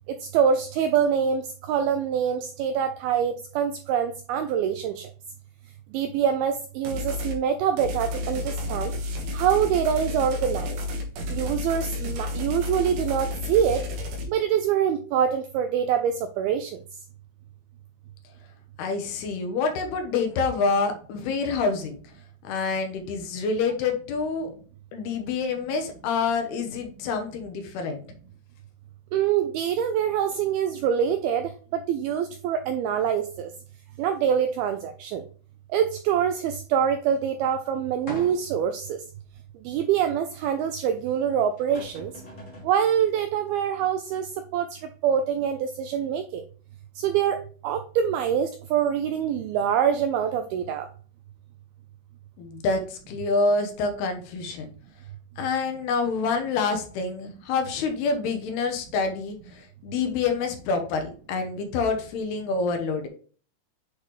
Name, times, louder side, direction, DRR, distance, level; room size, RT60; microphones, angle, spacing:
voice 1, 0.1-5.1 5.9-8.9 9.3-10.8 11.3-13.8 14.3-16.8 29.1-33.5 34.0-35.2 35.7-39.0 39.7-42.1 42.6-46.4 47.0-50.9, right 8 dB, 85° right, 8 dB, 2.2 m, -25 dB
sound 1, 6.9-7.4 7.8-14.2, left 2 dB, 65° right, 3.2 m, -31 dB
voice 2, 18.8-22.0 22.4-24.5 24.9-28.0 52.4-54.7 55.4-63.1, left 4 dB, 75° left, 5 dB, 2.9 m, -27 dB
sound 2, 38.1-38.7 39.3-39.4 41.2-41.3 41.6-42.8, equal, 35° left, 1.1 m, -41 dB
8.3 x 4.0 x 3.2 m, 0.41 s
omnidirectional pair, 4.9 m